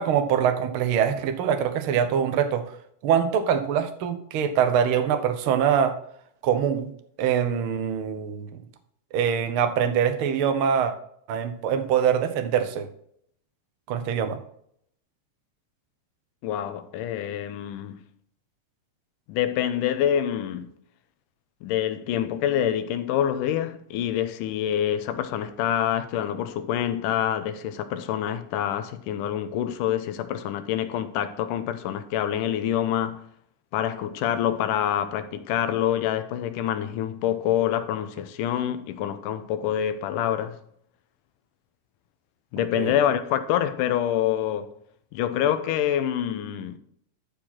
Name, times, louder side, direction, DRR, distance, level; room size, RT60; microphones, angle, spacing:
voice 1, 0.0-2.7 3.0-5.9 6.4-6.9 7.2-8.5 9.1-10.9 11.3-12.9 13.9-14.4 42.8-42.9, right 8 dB, 80° right, 1.2 m, -23 dB
voice 2, 16.4-18.0 19.3-20.7 21.6-33.2 33.7-40.6 42.5-44.7 45.1-46.8, left 10 dB, 90° left, 2.4 m, -26 dB
13.0 x 4.8 x 4.3 m
omnidirectional pair, 3.6 m